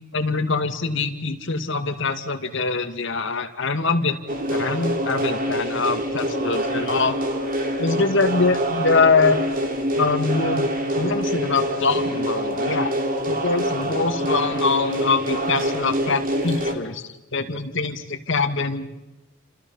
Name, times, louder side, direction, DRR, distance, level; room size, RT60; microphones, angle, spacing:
voice 1, 0.1-4.2 4.5-7.2 7.8-9.4 10.0-10.7 11.0-12.9 13.3-19.1, left 4 dB, 65° left, 6 dB, 2.3 m, -23 dB
sound 1, 4.3-16.7, equal, 45° right, 3.5 m, -25 dB
29.5 x 27.5 x 5.8 m, 0.96 s
head